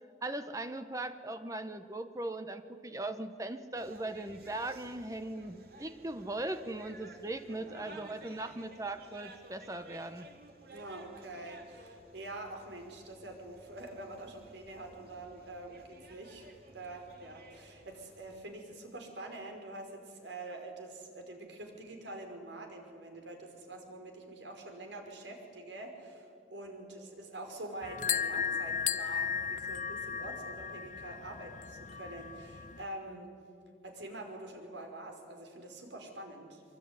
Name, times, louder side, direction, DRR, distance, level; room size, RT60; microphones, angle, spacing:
voice 1, 0.2-10.3, right 2 dB, 15° right, 10 dB, 0.8 m, -39 dB
sound 1, 3.8-18.4, right 2 dB, 55° right, 3.2 m, -56 dB
voice 2, 7.5-8.1 10.6-33.3 33.8-36.6, right 2 dB, 80° right, 4 dB, 5.1 m, -46 dB
sound 2, 27.8-32.8, left 7 dB, 40° left, 0.7 m, -35 dB
24.5 x 24.0 x 9.6 m, 2.4 s
head